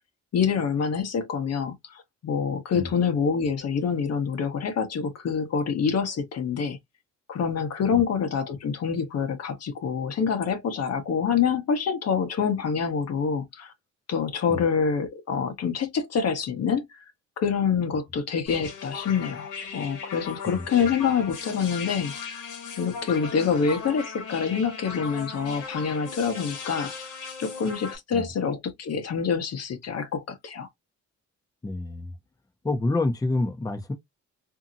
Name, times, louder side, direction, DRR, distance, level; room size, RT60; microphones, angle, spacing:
voice 1, 0.3-6.8 7.3-13.7 14.1-17.0 17.4-22.4 22.8-26.9 27.4-30.7, left 6 dB, 55° left, 0.9 m, -26 dB
sound 1, 18.5-28.0, left 5 dB, 85° left, 1.1 m, -38 dB
voice 2, 31.6-32.1 32.6-33.9, left 2 dB, 10° left, 0.6 m, -28 dB
2.7 x 2.7 x 2.6 m
cardioid pair, 90°, 30 cm